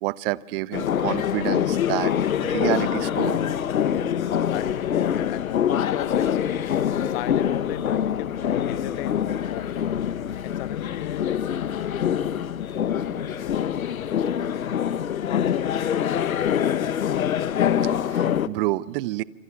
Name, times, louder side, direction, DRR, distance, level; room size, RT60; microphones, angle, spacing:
voice 1, 0.0-2.2 2.4-3.4 17.8-19.2, right 18 dB, 40° right, 0.9 m, -28 dB
sound 1, 0.7-18.5, left 9 dB, 80° left, 1.2 m, -25 dB
voice 2, 3.6-9.9 10.4-12.6 12.9-14.4 15.1-17.4, left 16 dB, 45° left, 1.3 m, -37 dB
26.5 x 26.0 x 7.3 m
hypercardioid pair, 125°, 41 cm